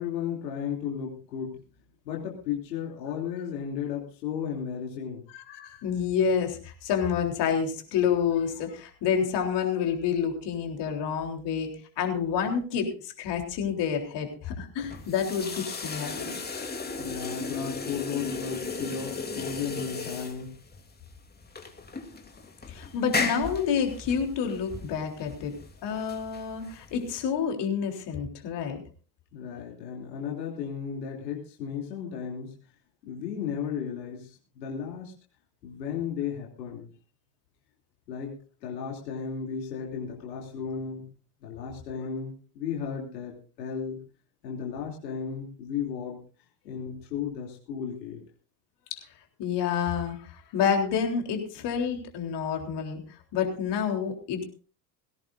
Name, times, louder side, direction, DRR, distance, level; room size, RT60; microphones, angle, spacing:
voice 1, 0.0-1.6 2.0-5.2 17.0-20.6 29.3-32.5 33.0-35.1 35.6-36.9 38.1-38.4 38.6-41.1 41.4-44.0 44.4-46.2 46.6-48.2, left 7 dB, 80° left, -1 dB, 3.1 m, -34 dB
voice 2, 5.3-11.7 12.0-16.4 22.7-25.5 25.8-28.8 48.9-49.0 49.4-53.0 53.3-54.4, left 7 dB, 55° left, 3 dB, 3.8 m, -28 dB
sound 1, 14.8-27.2, left 4 dB, 20° left, 3.0 m, -36 dB
19.5 x 16.5 x 2.6 m, 0.39 s
hypercardioid pair, 70°, 50 cm